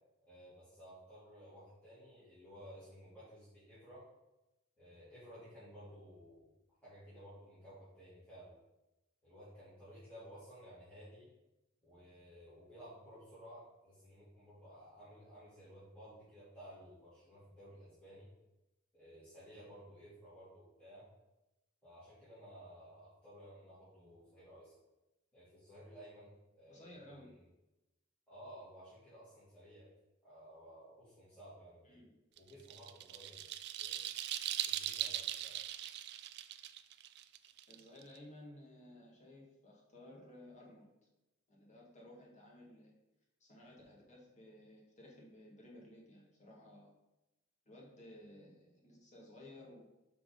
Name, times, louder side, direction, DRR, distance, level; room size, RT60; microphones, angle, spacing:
voice 1, 0.3-4.1 4.8-6.5 6.8-8.6 9.2-11.3 11.8-18.3 18.9-21.1 21.8-24.8 25.3-27.4 28.3-29.9 30.2-32.0 32.4-34.1 34.6-35.6, equal, 5° left, -13 dB, 2.3 m, -55 dB
voice 2, 26.7-27.3 31.8-32.1 37.7-40.9 41.5-42.9 43.4-46.9 47.6-49.8, left 1 dB, 35° left, -2 dB, 1.6 m, -56 dB
sound 1, 32.4-38.2, right 12 dB, 50° right, 0.3 m, -40 dB
6.1 x 3.6 x 5.2 m, 0.97 s
head